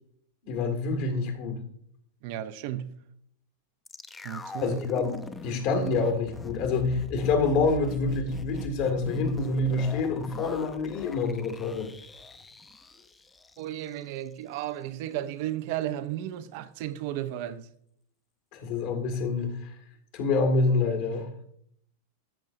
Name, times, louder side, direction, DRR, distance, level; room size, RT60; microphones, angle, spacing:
voice 1, 0.4-1.6 4.6-5.1 5.4-11.9 18.5-19.8 20.1-21.3, left 3 dB, 55° left, 1.9 m, -27 dB
voice 2, 2.2-3.0 4.2-4.8 13.6-17.7, right 12 dB, 55° right, 0.5 m, -34 dB
sound 1, 3.9-14.0 14.3-14.4, left 3 dB, 15° left, 0.6 m, -42 dB
13.5 x 6.4 x 2.6 m
hypercardioid pair, 105°, 0 cm